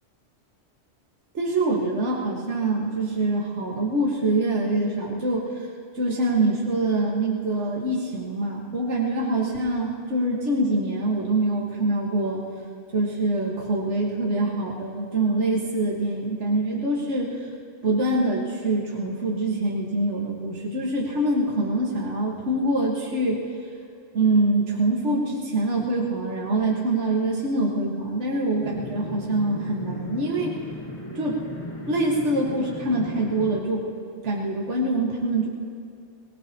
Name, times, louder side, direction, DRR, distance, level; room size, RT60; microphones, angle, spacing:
voice 1, 1.3-5.7 5.9-12.4 12.9-17.4 17.8-23.4 24.1-30.6 31.2-31.4 31.9-33.8 34.2-35.5, right 2 dB, 70° right, -3 dB, 1.9 m, -24 dB
sound 1, 28.6-33.6, left 2 dB, 30° left, 1.1 m, -37 dB
23.0 x 19.0 x 2.9 m, 2.3 s
omnidirectional pair, 1.3 m